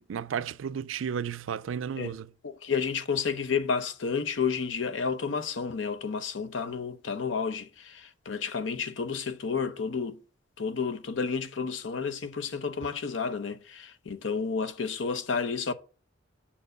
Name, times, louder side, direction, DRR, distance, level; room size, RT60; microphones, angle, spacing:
voice 1, 0.0-2.3, right 7 dB, 85° right, 0.4 m, -33 dB
voice 2, 2.4-10.2 10.6-15.7, left 5 dB, 70° left, 0.7 m, -31 dB
7.1 x 4.4 x 6.7 m
head